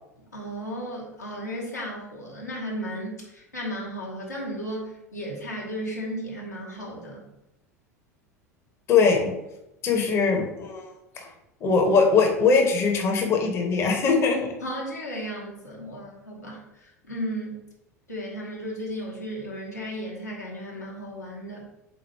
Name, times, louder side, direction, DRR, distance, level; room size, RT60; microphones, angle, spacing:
voice 1, 0.3-7.3 10.0-10.1 14.6-17.6 18.1-21.7, equal, 85° left, -4 dB, 1.2 m, -35 dB
voice 2, 8.9-9.3 9.8-10.8 11.6-14.5, left 5 dB, 30° left, 1 dB, 0.7 m, -21 dB
3.8 x 3.0 x 4.4 m, 0.91 s
figure-of-eight pair, 75°, 9 cm